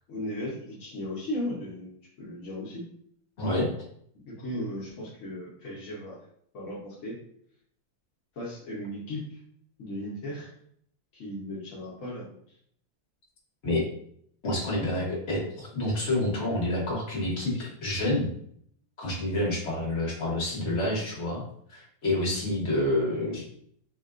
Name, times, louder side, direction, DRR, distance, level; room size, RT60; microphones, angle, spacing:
voice 1, 0.1-2.8 4.1-6.2 6.5-7.2 8.4-9.4 9.8-10.5 11.1-12.3, left 1 dB, 60° left, -6 dB, 0.8 m, -36 dB
voice 2, 3.4-3.7 13.6-13.9 14.4-18.3 19.0-21.4 21.7-23.4, left 1 dB, 45° left, -4 dB, 1.1 m, -28 dB
4.5 x 2.1 x 2.4 m, 0.66 s
omnidirectional pair, 2.1 m